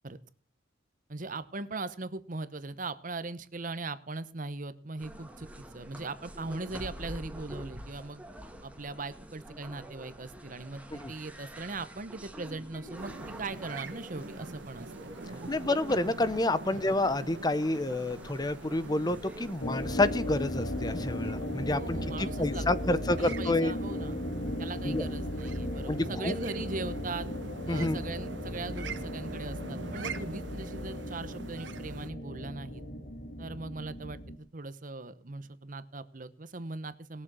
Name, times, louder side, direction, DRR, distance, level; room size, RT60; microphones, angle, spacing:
voice 1, 1.1-5.5 5.7-8.2 8.6-15.5 16.6-16.8 21.7-22.7 23.2-24.2 24.6-27.3 27.6-32.8 33.4-34.2 34.5-37.2, right 3 dB, 45° right, 14 dB, 0.9 m, -40 dB
sound 1, 5.0-21.3, equal, 5° right, 1.5 m, -47 dB
sound 2, 13.0-32.1, right 3 dB, 75° right, 1.3 m, -44 dB
voice 2, 15.5-23.7 24.9-25.0 25.9-26.3 27.7-28.0, left 2 dB, 20° left, 15 dB, 0.6 m, -29 dB
sound 3, 19.6-34.4, left 1 dB, 80° left, 2.6 m, -36 dB
20.0 x 7.5 x 6.2 m, 0.41 s
head